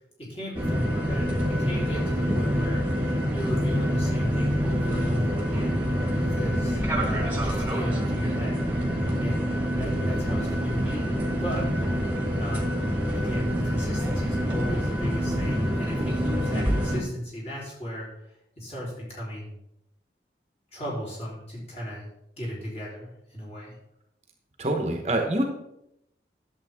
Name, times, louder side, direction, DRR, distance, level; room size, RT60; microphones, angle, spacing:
voice 1, 0.2-3.0 3.3-5.8 6.3-8.6 9.2-11.1 11.4-11.7 12.4-12.7 13.1-19.5 20.7-22.1 22.4-23.8, equal, 35° left, -5 dB, 3.7 m, -35 dB
sound 1, 0.5-17.0, equal, 10° right, 1.6 m, -26 dB
voice 2, 16.5-16.8 24.6-25.4, right 1 dB, 35° right, 3 dB, 1.1 m, -26 dB
11.0 x 7.3 x 3.6 m, 0.81 s
head